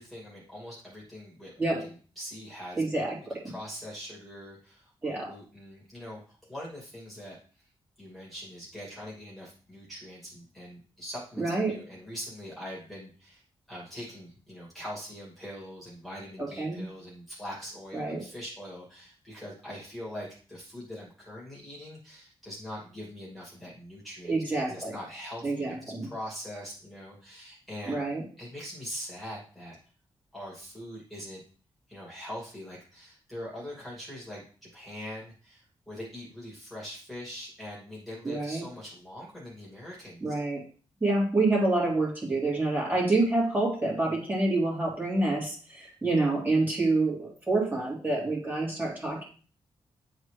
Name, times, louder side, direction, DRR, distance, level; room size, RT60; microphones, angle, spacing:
voice 1, 0.0-2.8 3.4-7.4 8.0-13.4 13.7-24.3 24.7-28.0 28.4-29.8 30.3-31.4 31.9-34.4 34.7-40.4, equal, ahead, -6 dB, 2.4 m, -42 dB
voice 2, 2.8-3.5 5.0-5.3 11.4-11.7 16.4-16.8 17.9-18.2 24.3-24.9 25.4-26.1 27.9-28.2 38.2-38.6 40.2-40.6 41.0-49.2, right 2 dB, 20° right, -4 dB, 2.7 m, -27 dB
9.9 x 4.1 x 3.3 m, 0.39 s
wide cardioid pair, 160°, 10 cm